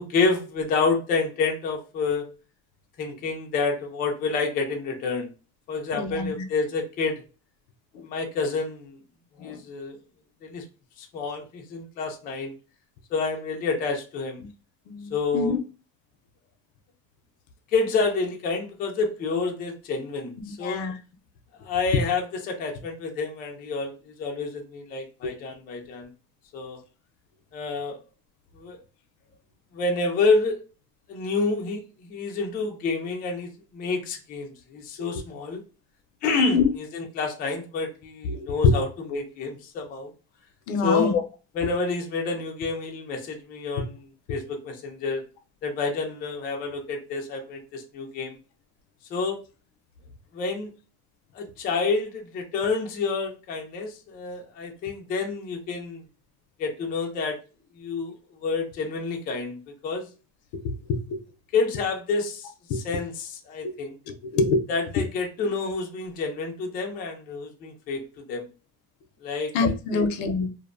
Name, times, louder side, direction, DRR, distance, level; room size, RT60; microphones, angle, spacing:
voice 1, 0.0-2.3 3.0-5.3 5.7-7.2 8.0-9.0 9.4-10.0 10.4-10.6 11.0-12.5 13.1-14.4 15.1-15.6 17.7-20.8 21.6-26.1 26.5-26.8 27.5-28.0 28.6-28.8 29.7-30.6 31.1-35.6 36.2-40.1 40.8-41.1 41.6-45.2 45.6-48.4 49.1-49.4 50.3-50.7 51.3-56.0 56.6-57.4 57.8-60.1 61.5-63.9 64.7-68.0 68.3-68.5 69.2-69.5 69.9-70.1, left 4 dB, 25° left, 0.3 m, -28 dB
voice 2, 5.9-6.4 7.9-8.0 9.4-9.6 14.9-15.6 20.6-21.0 36.4-36.7 38.3-38.7 40.7-41.2 60.6-60.7 61.1-61.2 62.7-62.8 63.6-63.7 64.3-64.6 69.5-70.5, left 4 dB, 80° left, 0.6 m, -24 dB
2.5 x 2.1 x 2.4 m
cardioid pair, 155°, 39 cm